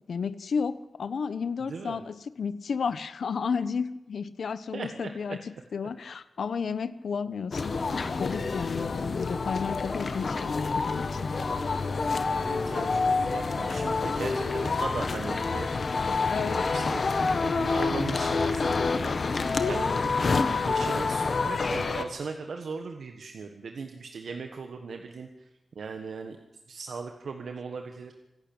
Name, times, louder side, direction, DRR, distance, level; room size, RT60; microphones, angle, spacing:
voice 1, 0.1-5.4 5.7-7.8 8.1-11.3 16.3-16.6, left 5 dB, 75° left, 14 dB, 1.0 m, -32 dB
voice 2, 1.7-2.0 4.7-5.4 12.2-15.7 16.3-17.0 17.4-18.7 19.6-20.4 20.6-25.5 25.7-26.4 26.7-28.1, right 5 dB, 80° right, 5 dB, 1.6 m, -38 dB
sound 1, 7.5-22.0, left 4 dB, 45° left, 1.4 m, -28 dB
26.0 x 12.0 x 9.0 m, 0.93 s
wide cardioid pair, 175°, 0 cm